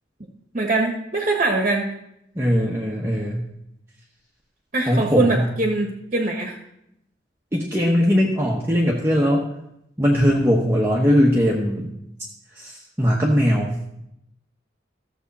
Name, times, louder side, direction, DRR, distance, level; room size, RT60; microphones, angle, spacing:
voice 1, 0.5-1.9 4.7-6.6, right 2 dB, 40° right, 1 dB, 1.2 m, -22 dB
voice 2, 2.3-3.4 4.9-5.5 7.5-9.5 10.0-11.9 12.5-13.7, equal, 15° right, -3 dB, 1.0 m, -20 dB
14.0 x 7.1 x 4.1 m, 0.81 s
head